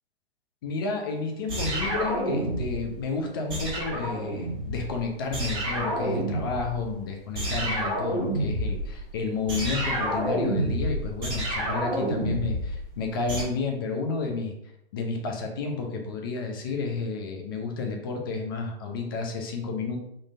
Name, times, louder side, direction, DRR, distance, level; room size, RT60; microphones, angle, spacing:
voice 1, 0.6-14.6 14.9-20.0, left 4 dB, 20° left, 2 dB, 0.4 m, -31 dB
sound 1, 1.5-3.0 3.5-5.0 5.3-6.9 7.3-13.4, right 1 dB, 15° right, 1.4 m, -29 dB
3.7 x 2.6 x 3.7 m, 0.80 s
hypercardioid pair, 150°, 32 cm